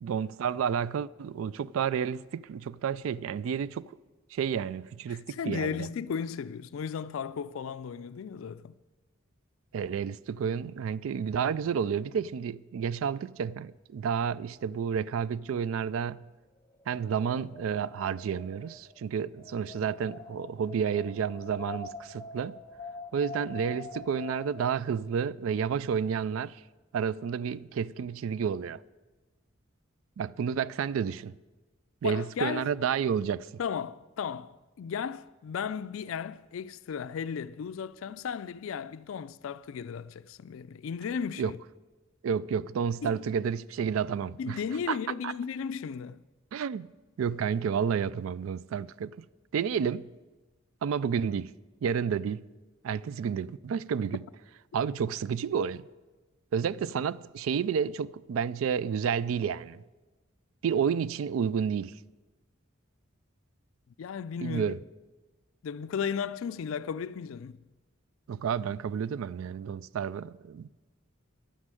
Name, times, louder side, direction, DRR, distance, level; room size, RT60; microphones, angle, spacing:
voice 1, 0.0-3.9 4.3-5.9 9.7-16.2 16.9-22.6 23.1-26.6 26.9-28.8 30.2-31.3 32.0-33.5 41.4-41.5 42.2-44.6 44.9-45.0 45.2-45.3 46.5-46.9 47.2-49.2 49.5-50.1 50.8-51.5 51.8-52.4 52.8-54.2 54.7-55.8 56.5-59.8 60.6-61.9 64.4-64.8 68.3-70.7, right 7 dB, 80° right, 0.3 m, -30 dB
voice 2, 5.1-8.7 32.0-32.7 33.6-41.6 43.0-43.2 44.4-46.2 64.0-64.7 65.6-67.6, left 7 dB, 75° left, 0.4 m, -35 dB
Wind, 16.7-24.7, left 3 dB, 15° left, 1.3 m, -45 dB
11.5 x 9.7 x 7.6 m
head